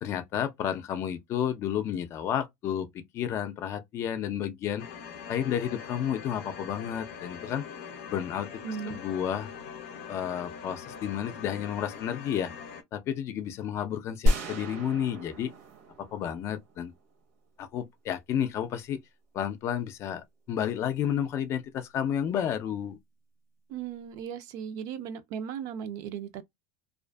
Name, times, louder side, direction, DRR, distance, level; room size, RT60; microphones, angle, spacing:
voice 1, 0.0-4.9 5.3-7.7 8.1-9.5 10.1-12.5 12.9-15.5 16.0-16.9 17.6-19.0 19.3-23.0, left 9 dB, 40° left, 0.4 m, -31 dB
sound 1, 4.8-12.8, left 7 dB, 85° left, 0.6 m, -43 dB
voice 2, 8.6-9.0 23.7-26.4, right 8 dB, 55° right, 0.4 m, -37 dB
sound 2, 14.3-17.2, equal, 80° right, 1.0 m, -30 dB
2.4 x 2.4 x 2.3 m
supercardioid pair, 135°, 7 cm